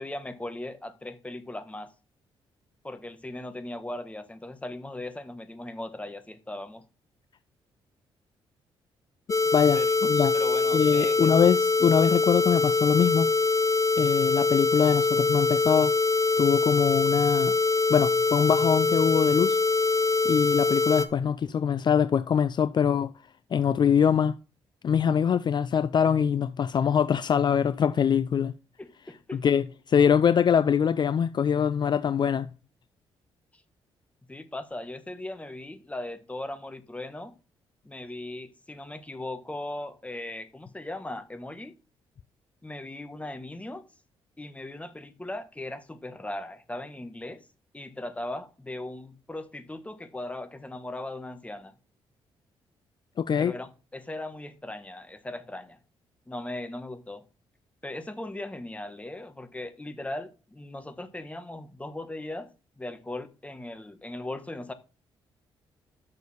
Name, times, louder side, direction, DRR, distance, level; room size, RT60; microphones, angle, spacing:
voice 1, 0.0-1.9 2.8-6.8 9.7-9.9 10.3-11.3 28.8-29.4 33.5-33.6 34.3-37.3 37.8-41.7 42.6-43.8 44.4-47.4 47.7-51.7 53.4-55.8 56.3-57.2 57.8-62.5 62.8-64.7, left 1 dB, 15° left, 1.4 m, -38 dB
sound 1, 9.3-21.1, left 3 dB, 30° left, 1.0 m, -23 dB
voice 2, 9.5-10.3 10.7-13.3 14.0-15.9 16.4-17.5 17.9-19.6 20.2-23.1 23.5-24.3 24.8-28.5 29.4-32.5 53.2-53.5, left 7 dB, 45° left, 0.5 m, -23 dB
8.2 x 6.7 x 4.2 m
supercardioid pair, 65°, 10 cm